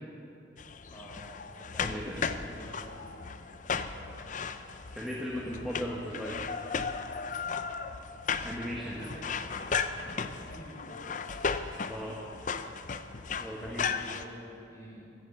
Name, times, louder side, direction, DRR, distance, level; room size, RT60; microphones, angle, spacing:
sound 1, 0.6-14.2, left 5 dB, 40° left, 0.5 m, -36 dB
voice 1, 0.9-4.3 8.7-9.2 9.8-11.2 13.5-15.1, equal, 15° left, -5 dB, 5.0 m, -50 dB
voice 2, 1.8-2.3 4.9-6.4 8.3-9.1 11.8-12.2 13.4-13.9, equal, ahead, -4 dB, 1.4 m, -37 dB
16.0 x 12.0 x 7.2 m, 2.7 s
head